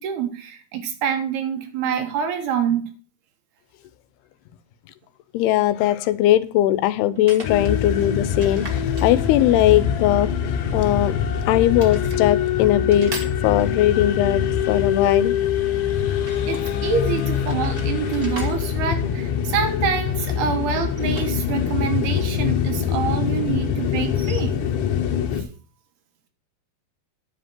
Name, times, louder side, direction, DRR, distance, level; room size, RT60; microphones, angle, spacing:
voice 1, 0.0-2.9 16.5-24.6 25.4-25.5, right 7 dB, 80° right, 3.5 m, -26 dB
sound 1, 5.0-5.1 7.1-7.8 8.4-9.7 10.7-11.4 11.7-12.2 12.9-14.0 16.1-16.8 17.3-19.7 20.7-22.0 22.2-22.3 24.0-24.4, right 2 dB, 30° right, 1.1 m, -40 dB
voice 2, 5.3-10.3 10.7-11.1 11.5-13.1 13.4-15.4, left 13 dB, 90° left, 2.7 m, -19 dB
sound 2, 7.4-25.4, left 8 dB, 70° left, 2.3 m, -24 dB
10.5 x 5.1 x 7.6 m
omnidirectional pair, 4.5 m